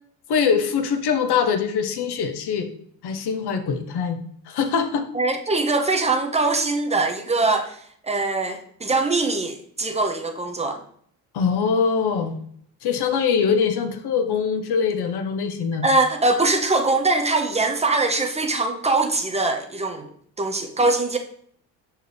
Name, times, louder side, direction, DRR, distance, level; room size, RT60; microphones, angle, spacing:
voice 1, 0.3-2.7 3.0-4.2 4.5-5.1 11.3-12.4 12.8-15.8, left 6 dB, 60° left, 7 dB, 1.0 m, -23 dB
voice 2, 5.1-10.8 15.8-20.1 20.4-21.2, right 3 dB, 15° right, 4 dB, 0.9 m, -22 dB
6.1 x 4.6 x 3.4 m, 0.63 s
supercardioid pair, 80°, 45 cm